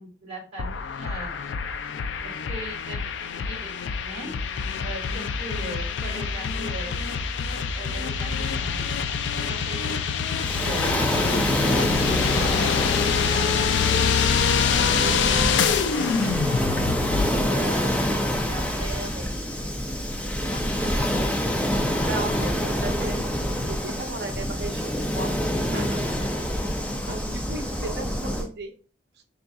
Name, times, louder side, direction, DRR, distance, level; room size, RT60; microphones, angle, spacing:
voice 1, 0.0-1.3 2.2-3.7 4.0-4.3 4.8-6.9 7.7-8.9 9.4-9.9 10.3-10.9 11.8-13.0 13.3-16.7 17.5-18.0 18.5-19.6 20.4-21.2, right 2 dB, 35° right, 2.0 m, -39 dB
sound 1, 0.6-17.5, left 6 dB, 85° left, 0.3 m, -26 dB
Waves surf, 10.4-28.5, equal, 10° left, 0.4 m, -26 dB
voice 2, 22.1-25.4 25.7-26.3 27.1-28.7, right 2 dB, 65° right, 0.6 m, -35 dB
3.9 x 3.6 x 2.3 m
head